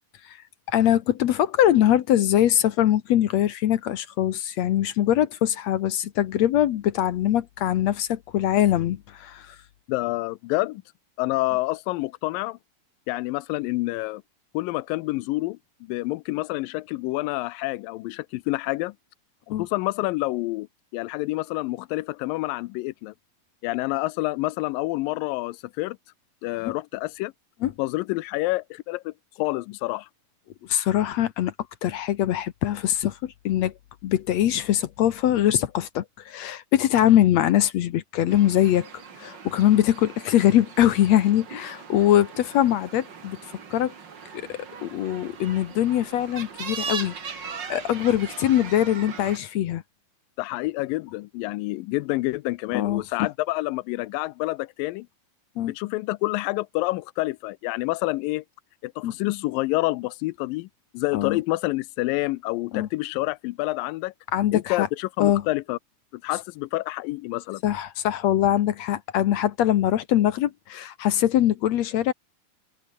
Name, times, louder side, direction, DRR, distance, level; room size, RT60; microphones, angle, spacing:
voice 1, 0.7-9.6 19.5-19.7 26.6-26.7 27.6-27.7 30.7-31.5 31.8-33.7 34.0-38.9 39.2-43.4 43.7-43.9 44.3-49.8 52.7-53.3 55.6-55.7 59.0-59.1 61.1-61.4 62.7-62.9 64.3-64.9 65.2-65.4 67.6-72.1, left 12 dB, 65° left, 1.9 m, -22 dB
voice 2, 9.9-10.8 11.2-12.6 13.1-14.2 14.5-19.0 19.5-20.7 20.9-23.1 23.6-26.0 26.4-27.3 27.8-30.1 50.4-55.1 55.7-58.4 58.8-60.7 60.9-64.1 64.5-65.8 66.1-67.6, left 20 dB, 85° left, 2.3 m, -28 dB
sound 1, 38.3-49.4, right 6 dB, 35° right, 2.3 m, -39 dB
omnidirectional pair, 4.0 m